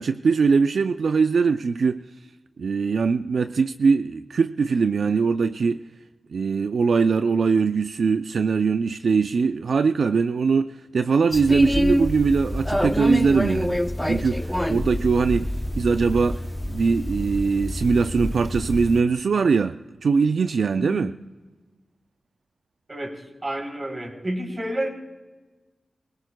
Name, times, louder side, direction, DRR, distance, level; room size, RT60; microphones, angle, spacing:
voice 1, 0.0-2.0 2.6-5.8 6.3-15.5 15.8-21.1, right 5 dB, 80° right, 0.3 m, -22 dB
sound 1, 11.3-19.0, equal, 5° left, 0.7 m, -26 dB
voice 2, 20.7-21.1 22.9-24.9, right 1 dB, 35° right, 3.5 m, -30 dB
24.0 x 17.0 x 2.2 m
cardioid pair, 65°, 0 cm